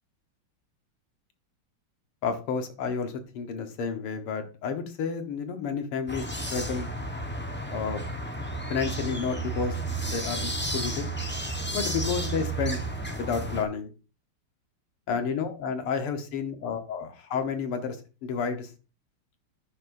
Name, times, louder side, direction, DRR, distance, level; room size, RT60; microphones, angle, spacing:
voice 1, 2.2-6.9 7.7-8.0 8.7-9.8 10.1-11.1 11.7-12.8 13.2-13.9 15.1-18.0 18.2-18.7, left 6 dB, 80° left, 7 dB, 2.2 m, -31 dB
sound 1, 6.1-13.6, right 2 dB, 15° left, 0.3 m, -32 dB
11.0 x 9.5 x 2.6 m, 0.33 s
omnidirectional pair, 2.4 m